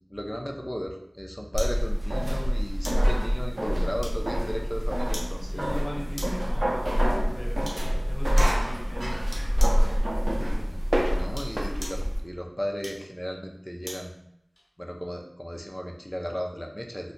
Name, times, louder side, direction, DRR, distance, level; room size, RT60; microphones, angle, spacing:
voice 1, 0.0-5.6 10.4-10.8 11.1-14.2 14.8-17.1, equal, 15° left, 1 dB, 0.5 m, -35 dB
sound 1, 1.5-12.2, equal, 60° right, 0.5 m, -25 dB
sound 2, 1.6-1.8 2.8-3.1 4.0-4.4 5.1-5.4 6.1-6.5 7.6-7.9 8.4-8.6 9.3-9.8 11.2-12.1 12.8-14.1 14.6-14.7, left 1 dB, 65° left, 0.9 m, -40 dB
voice 2, 5.5-9.2 9.5-10.0, equal, 35° left, -5 dB, 1.1 m, -40 dB
2.6 x 2.2 x 3.8 m, 0.76 s
wide cardioid pair, 45°, 0 cm